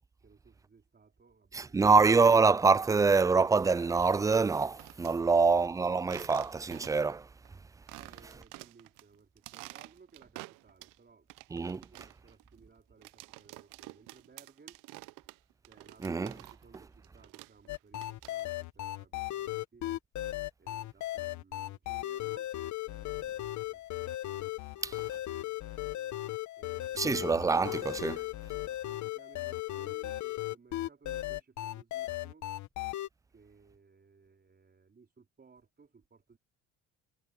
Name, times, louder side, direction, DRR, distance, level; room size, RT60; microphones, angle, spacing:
voice 1, 0.2-1.9 7.9-11.3 11.9-14.8 15.7-19.9 20.6-22.6 22.8-23.8 24.7-27.3 28.5-32.5 33.3-36.4, right 5 dB, 30° right, 4.6 m, -60 dB
voice 2, 1.5-7.3 11.5-11.8 16.0-16.3 24.8-24.9 27.0-28.2, right 4 dB, 10° right, 0.4 m, -25 dB
sound 1, 4.5-5.1 6.0-7.1 7.4-7.5 7.9-9.0 9.4-11.0 11.3-16.8 17.0-18.6, right 22 dB, 70° right, 1.0 m, -49 dB
sound 2, 17.7-33.1, left 15 dB, 60° left, 1.3 m, -37 dB
hypercardioid pair, 70°, 33 cm